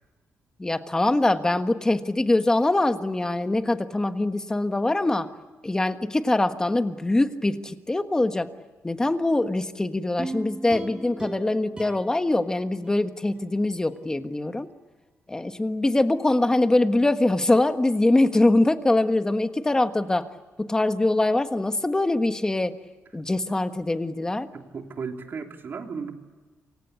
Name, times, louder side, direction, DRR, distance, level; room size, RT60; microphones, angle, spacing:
voice 1, 0.6-5.3 5.6-8.5 8.8-14.7 15.3-20.3 20.6-22.8 23.1-24.5, left 2 dB, 15° left, 8 dB, 1.4 m, -23 dB
sound 1, 10.2-13.5 13.9-14.0, right 2 dB, 15° right, 3.6 m, -39 dB
voice 2, 24.5-26.1, right 5 dB, 45° right, 3 dB, 3.2 m, -35 dB
28.5 x 25.0 x 8.3 m, 1.4 s
wide cardioid pair, 155°, 5 cm